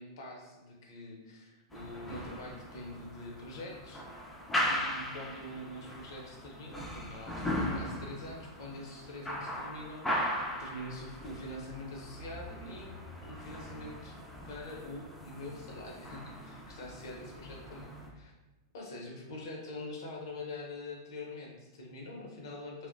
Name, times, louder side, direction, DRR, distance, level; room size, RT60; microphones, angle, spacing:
voice 1, 0.0-4.0 4.6-12.9 13.2-14.2 14.5-18.3 18.7-22.9, left 1 dB, 70° left, -1 dB, 0.7 m, -45 dB
sound 1, 1.7-18.1, left 1 dB, 5° left, 0.4 m, -39 dB
2.9 x 2.0 x 2.5 m, 1.1 s
hypercardioid pair, 110°, 2 cm